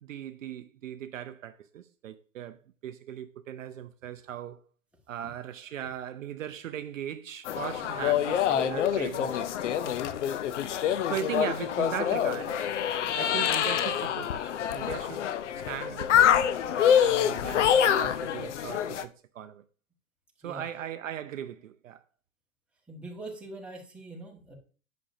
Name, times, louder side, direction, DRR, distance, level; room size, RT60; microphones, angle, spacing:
voice 1, 0.0-4.6 5.1-9.5 9.8-9.9 11.1-12.7 13.2-15.2 15.6-16.1 16.7-19.6 20.4-22.0, right 10 dB, 65° right, 0.6 m, -38 dB
sound 1, 7.5-19.0, left 9 dB, 55° left, 0.7 m, -26 dB
voice 2, 22.9-24.5, right 2 dB, 5° right, 1.6 m, -43 dB
8.5 x 6.2 x 2.7 m
figure-of-eight pair, 110°, 43 cm